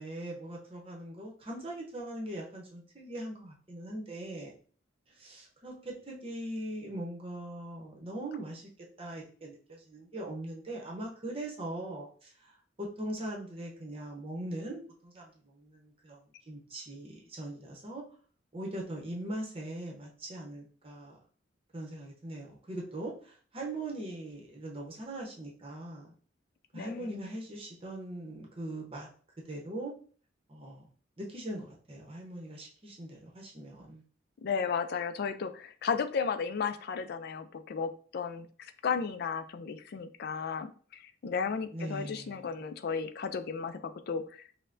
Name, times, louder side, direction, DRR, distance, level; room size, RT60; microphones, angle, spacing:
voice 1, 0.0-4.5 5.1-8.7 9.0-18.0 18.5-21.2 21.7-26.1 26.7-29.1 29.5-29.9 30.5-30.8 31.2-34.0 41.7-42.5, right 1 dB, 30° right, -1 dB, 0.8 m, -41 dB
voice 2, 26.7-27.3 34.4-44.5, left 6 dB, 55° left, 9 dB, 0.3 m, -34 dB
5.4 x 2.1 x 2.5 m, 0.43 s
head